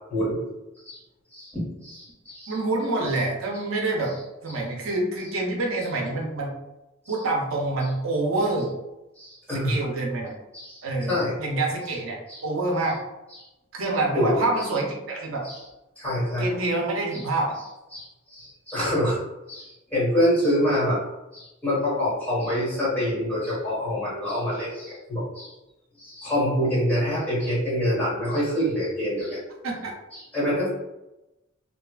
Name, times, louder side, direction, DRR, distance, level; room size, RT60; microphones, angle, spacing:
voice 1, 1.3-2.6 7.1-7.2 9.2-9.8 10.5-11.3 12.3-12.4 14.1-14.5 15.4-15.6 16.0-16.5 17.1-17.2 17.9-19.2 19.5-21.0 21.3-25.5 26.0-29.4 30.1-30.7, equal, 10° left, -9 dB, 1.2 m, -26 dB
voice 2, 2.5-4.1 4.4-6.5 7.1-8.7 9.5-10.3 10.8-12.2 12.4-13.0 13.7-15.4 16.4-17.5 29.6-29.9, right 2 dB, 75° right, 0 dB, 0.6 m, -26 dB
2.8 x 2.4 x 2.3 m, 0.98 s
head